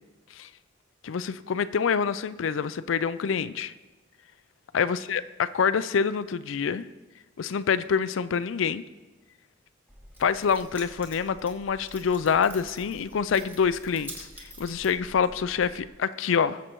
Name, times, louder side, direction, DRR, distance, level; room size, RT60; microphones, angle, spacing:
voice 1, 1.0-3.7 4.7-6.9 7.4-8.8 10.2-16.6, left 6 dB, 75° left, 15 dB, 0.4 m, -26 dB
Keys jangling, 9.9-15.9, right 1 dB, 10° right, 2.2 m, -47 dB
21.0 x 7.4 x 3.1 m, 1.2 s
head